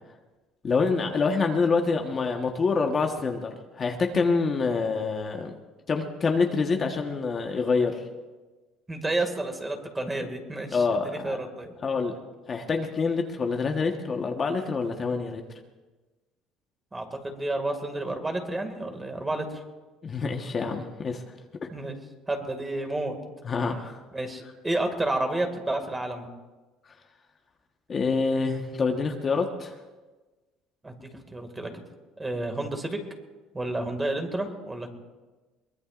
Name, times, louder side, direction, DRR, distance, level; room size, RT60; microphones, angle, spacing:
voice 1, 0.6-5.5 5.9-8.0 10.7-11.4 11.8-12.1 12.5-15.4 20.0-21.2 23.4-24.0 27.9-29.7, left 4 dB, 30° left, 3 dB, 1.3 m, -26 dB
voice 2, 8.9-11.7 16.9-19.6 21.7-22.0 22.3-23.2 23.6-23.7 24.1-26.3 30.8-31.7 32.2-33.0 33.5-34.9, right 2 dB, 15° right, 5 dB, 2.1 m, -30 dB
23.0 x 20.5 x 2.5 m, 1.2 s
cardioid pair, 120°, 0 cm